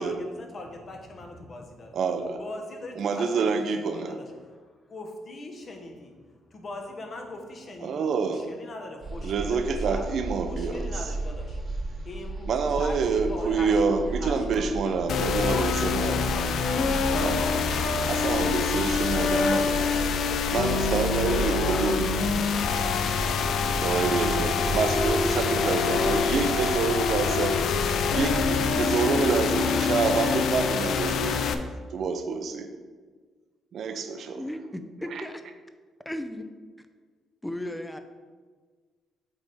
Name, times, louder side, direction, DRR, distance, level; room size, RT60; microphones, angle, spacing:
voice 1, 0.0-2.0 2.4-4.6 4.9-6.1 6.5-10.1 10.4-11.6 12.0-14.9 15.4-18.3 19.1-22.6 23.9-24.2, left 2 dB, 45° left, 2 dB, 1.1 m, -41 dB
voice 2, 1.9-2.4 3.0-4.1 7.8-8.5 9.2-11.0 12.5-16.3 17.2-17.4 18.1-19.8 20.5-22.3 23.8-27.6 28.1-31.5 31.9-32.7 33.7-34.4 35.1-35.2, right 5 dB, 65° right, 7 dB, 0.6 m, -27 dB
sound 1, 9.0-28.7, right 2 dB, 40° right, 1.2 m, -35 dB
sound 2, 15.1-31.5, left 5 dB, 70° left, 0.4 m, -25 dB
voice 3, 34.4-35.4 36.1-36.4 36.8-36.9 37.4-38.0, left 1 dB, 5° left, 8 dB, 0.5 m, -35 dB
8.0 x 3.5 x 4.2 m, 1.5 s
cardioid pair, 90°, 0 cm